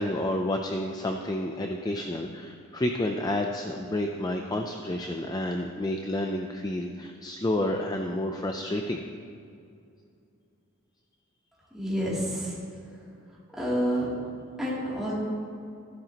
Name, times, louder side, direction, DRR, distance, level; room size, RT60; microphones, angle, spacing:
voice 1, 0.0-9.0, left 1 dB, 20° left, 3 dB, 0.4 m, -30 dB
voice 2, 11.7-12.6 12.9-14.1 14.6-15.1, equal, ahead, -8 dB, 2.8 m, -30 dB
14.0 x 11.5 x 2.9 m, 2.4 s
head